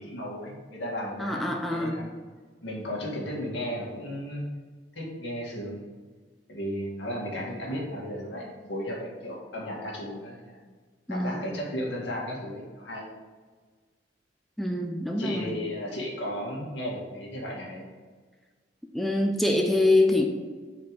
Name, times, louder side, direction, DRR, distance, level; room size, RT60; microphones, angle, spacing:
voice 1, 0.0-2.1 2.6-4.5 4.9-5.9 6.5-10.6 11.1-13.1 15.2-17.9, equal, 75° left, -3 dB, 2.0 m, -34 dB
voice 2, 1.2-2.0 11.1-11.5 14.6-15.5 18.9-20.2, left 2 dB, ahead, 0 dB, 0.5 m, -25 dB
5.6 x 4.9 x 4.6 m, 1.5 s
head